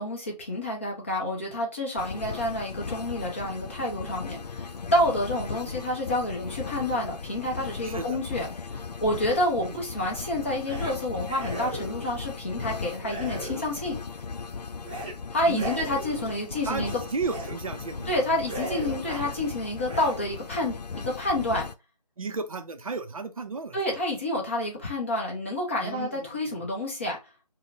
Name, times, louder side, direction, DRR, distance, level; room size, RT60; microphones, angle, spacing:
voice 1, 0.0-14.0 15.3-17.0 18.1-20.8 21.0-21.7 23.7-27.2, left 1 dB, 20° left, 0.6 m, -29 dB
sound 1, 2.0-21.7, left 5 dB, 75° left, 0.4 m, -37 dB
voice 2, 7.8-8.2 15.5-15.7 16.6-18.1 22.2-23.8 25.8-26.7, right 4 dB, 55° right, 0.5 m, -33 dB
sound 2, 10.6-10.9 11.3-12.2 13.0-14.0 14.8-15.1 15.5-16.4 17.2-17.5 17.9-18.1 18.4-19.3 19.8-20.5, right 2 dB, 15° right, 0.8 m, -38 dB
3.7 x 2.1 x 2.6 m
figure-of-eight pair, 160°, 21 cm